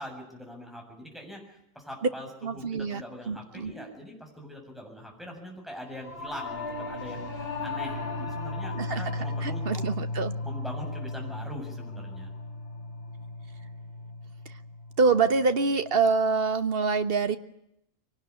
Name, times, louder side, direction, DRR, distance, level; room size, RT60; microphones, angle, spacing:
voice 1, 0.0-9.8 10.4-12.3, equal, ahead, 0 dB, 7.3 m, -42 dB
voice 2, 2.4-3.7 8.8-10.3 15.0-17.4, right 4 dB, 50° right, 10 dB, 1.4 m, -26 dB
Singing / Musical instrument, 6.0-15.5, left 2 dB, 45° left, 5.2 m, -35 dB
23.0 x 18.5 x 9.8 m, 0.81 s
omnidirectional pair, 1.3 m